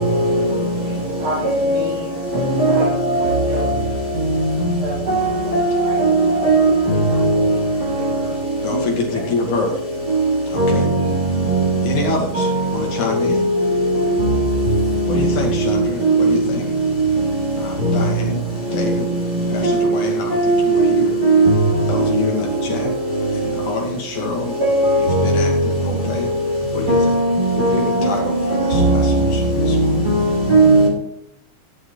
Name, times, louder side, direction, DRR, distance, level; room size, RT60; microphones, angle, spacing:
voice 1, 0.0-2.2 2.6-3.7 4.8-5.0 5.4-6.1 6.5-6.7 7.1-8.3 9.1-9.2 10.9-11.1, equal, 50° right, 5.2 m, -32 dB
voice 2, 1.4-1.8 2.6-2.7 3.2-3.4 5.1-5.3 5.5-5.6 6.0-6.1 6.4-6.7 10.6-10.7 14.2-14.3 20.4-20.6 21.2-21.5 24.6-24.9 26.9-27.1 27.6-27.7 28.7-29.2 30.0-30.2 30.5-30.9, right 2 dB, 25° right, 4.5 m, -15 dB
voice 3, 8.6-9.8 10.4-10.9 11.8-13.4 15.1-16.7 17.6-18.4 18.7-19.1 19.5-21.2 21.9-22.9 23.3-24.6 25.0-26.3 26.7-27.1 27.5-29.9, left 4 dB, 60° left, 3.7 m, -26 dB
16.5 x 7.8 x 4.0 m
omnidirectional pair, 4.2 m